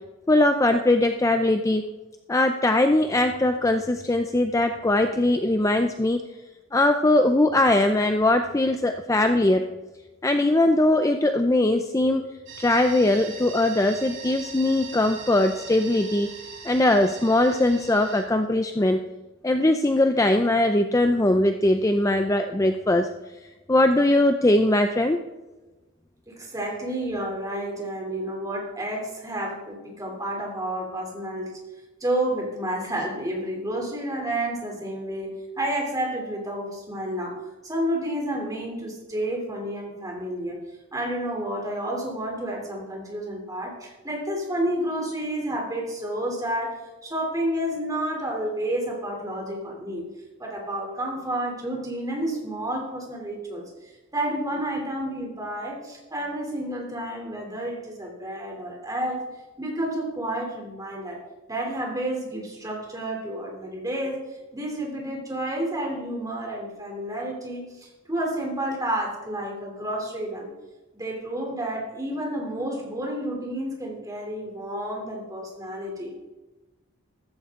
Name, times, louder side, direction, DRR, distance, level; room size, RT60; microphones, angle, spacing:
voice 1, 0.3-1.9 2.3-6.2 6.7-9.7 10.2-12.2 12.6-16.3 16.6-19.0 19.4-23.1 23.7-25.2, left 1 dB, 15° left, 7 dB, 0.5 m, -21 dB
sound 1, 12.5-18.2, right 5 dB, 65° right, 3.1 m, -41 dB
voice 2, 26.3-31.6 32.0-37.4 37.6-40.6 40.9-50.0 50.4-59.2 59.6-61.2 61.5-64.2 64.5-70.5 70.9-76.1, right 1 dB, 15° right, -1 dB, 3.1 m, -30 dB
14.5 x 13.5 x 3.7 m, 1.1 s
head